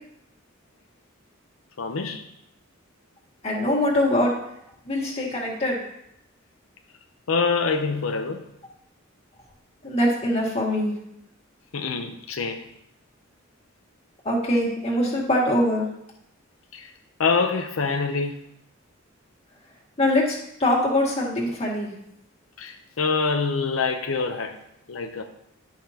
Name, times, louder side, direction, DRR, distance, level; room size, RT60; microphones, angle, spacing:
voice 1, 1.8-2.2 7.3-8.4 11.7-12.6 16.7-16.9 17.2-18.4 22.6-24.6 24.9-25.2, left 4 dB, 90° left, 4 dB, 0.7 m, -25 dB
voice 2, 3.4-4.3 4.9-5.8 9.8-10.9 14.3-15.8 20.0-21.9, left 1 dB, 30° left, -3 dB, 2.1 m, -23 dB
11.5 x 5.8 x 2.9 m, 0.78 s
head